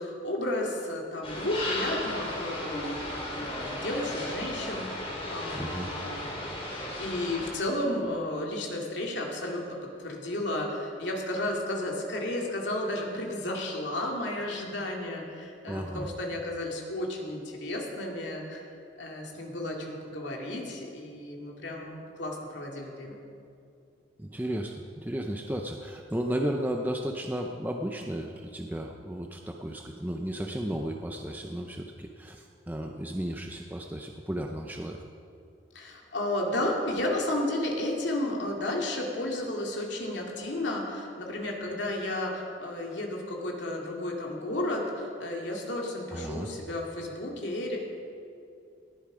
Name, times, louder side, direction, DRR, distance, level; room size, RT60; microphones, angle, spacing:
voice 1, 0.0-6.5 7.0-9.6 10.0-18.6 19.0-23.2 35.7-47.8, left 1 dB, 75° left, -1 dB, 2.4 m, -33 dB
sound 1, 1.2-7.5, left 1 dB, 30° left, 3.3 m, -35 dB
voice 2, 5.5-5.9 15.7-16.1 24.2-35.0 46.1-46.5, right 1 dB, 10° right, 2 dB, 0.6 m, -34 dB
18.0 x 10.5 x 5.0 m, 2.6 s
head